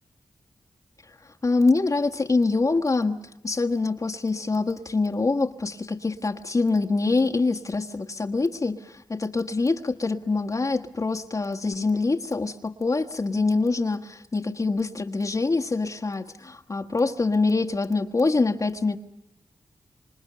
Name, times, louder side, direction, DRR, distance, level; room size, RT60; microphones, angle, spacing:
voice 1, 1.2-3.2 3.4-19.0, left 3 dB, 40° left, 3 dB, 1.5 m, -25 dB
26.0 x 26.0 x 6.8 m, 0.79 s
cardioid pair, 70°, 9 cm